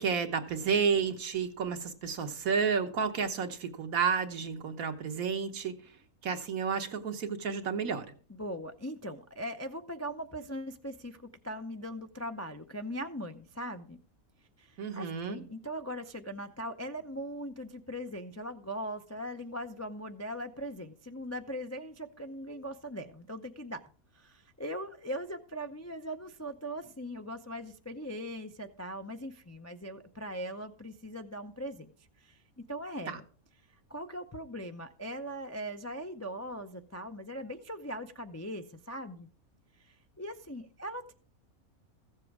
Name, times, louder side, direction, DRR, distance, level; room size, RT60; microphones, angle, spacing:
voice 1, 0.0-6.0 6.2-8.1 14.8-15.4 33.1-33.2, right 6 dB, 75° right, 6 dB, 1.6 m, -31 dB
voice 2, 8.3-14.0 14.6-23.8 24.1-31.9 32.2-32.4 32.7-33.2 33.9-39.3 39.8-41.1, equal, 25° left, 6 dB, 0.4 m, -40 dB
15.0 x 7.6 x 4.8 m, 0.43 s
omnidirectional pair, 1.5 m